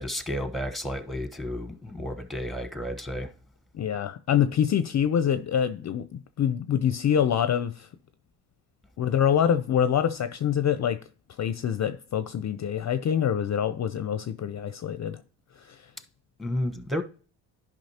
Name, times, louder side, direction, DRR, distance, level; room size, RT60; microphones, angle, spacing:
voice 1, 0.0-3.3 16.4-17.0, left 1 dB, ahead, 1.0 m, -32 dB
voice 2, 3.7-7.9 9.0-11.0 11.4-15.2 15.6-15.9, left 9 dB, 40° left, 0.5 m, -25 dB
10.5 x 5.3 x 2.8 m
supercardioid pair, 65°, 46 cm